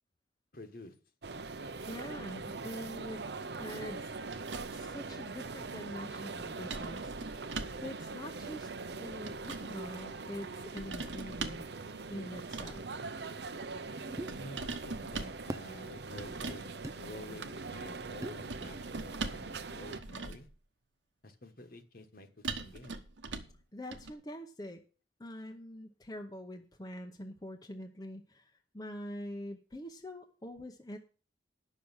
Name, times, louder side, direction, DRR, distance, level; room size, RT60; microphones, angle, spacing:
voice 1, 0.5-0.9 13.9-16.7 17.0-20.5 21.2-23.0, left 1 dB, 50° left, 1.4 m, -50 dB
sound 1, 1.2-20.0, right 3 dB, 60° right, 0.7 m, -42 dB
voice 2, 1.8-3.2 3.6-4.1 4.7-7.2 7.8-8.7 9.0-11.6 12.1-12.8 23.7-24.8 25.2-31.0, equal, 20° left, 0.8 m, -44 dB
sound 2, 4.3-4.9 6.7-7.9 8.9-9.7 10.8-11.7 12.4-12.9 14.3-15.4 16.2-16.6 18.5-19.5 19.9-20.5 22.4-23.6 23.9-24.1, right 3 dB, 90° right, 1.2 m, -41 dB
sound 3, 14.2-14.4 15.5-15.7 16.8-17.0 18.2-18.4, right 1 dB, 15° right, 0.5 m, -39 dB
10.0 x 6.4 x 7.1 m
head